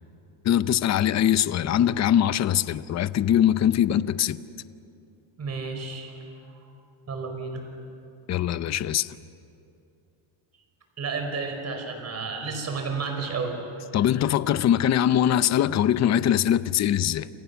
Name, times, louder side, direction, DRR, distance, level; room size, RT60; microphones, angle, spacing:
voice 1, 0.4-4.4 8.3-9.2 13.9-17.3, left 10 dB, 35° left, 0.7 m, -22 dB
voice 2, 5.4-6.7 7.1-7.6 11.0-13.6 13.9-14.1, right 4 dB, 30° right, 5.1 m, -32 dB
29.0 x 27.5 x 7.1 m
cardioid pair, 155°, 49 cm